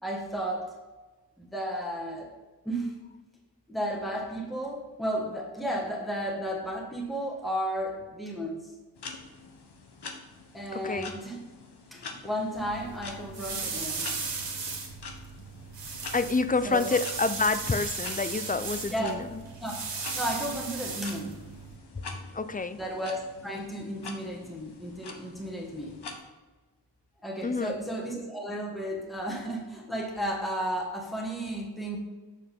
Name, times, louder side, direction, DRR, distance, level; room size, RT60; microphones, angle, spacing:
voice 1, 0.0-0.7 1.4-2.3 2.6-2.9 3.7-8.7 10.5-11.4 11.9-14.1 16.6-17.0 18.9-19.2 19.6-19.8 20.1-21.4 22.8-26.0 27.2-32.0, equal, ahead, -2 dB, 1.6 m, -33 dB
sound 1, 9.0-26.2, left 4 dB, 70° left, 1.2 m, -46 dB
sound 2, 12.5-21.8, right 4 dB, 85° right, 1.6 m, -37 dB
voice 2, 16.1-19.4 22.3-22.8 27.4-27.8, left 4 dB, 20° left, 12 dB, 0.4 m, -28 dB
7.2 x 6.8 x 3.6 m, 1.2 s
wide cardioid pair, 80°, 41 cm